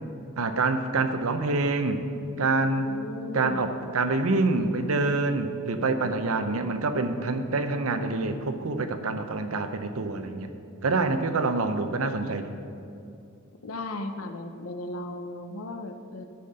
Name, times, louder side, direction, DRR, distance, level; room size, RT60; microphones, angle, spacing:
voice 1, 0.4-2.0 2.4-2.9 3.3-10.5 10.8-12.6, right 3 dB, 80° right, 8 dB, 0.7 m, -26 dB
voice 2, 2.8-3.7 13.6-16.3, left 2 dB, 80° left, 7 dB, 0.8 m, -36 dB
10.5 x 5.8 x 6.5 m, 2.5 s
head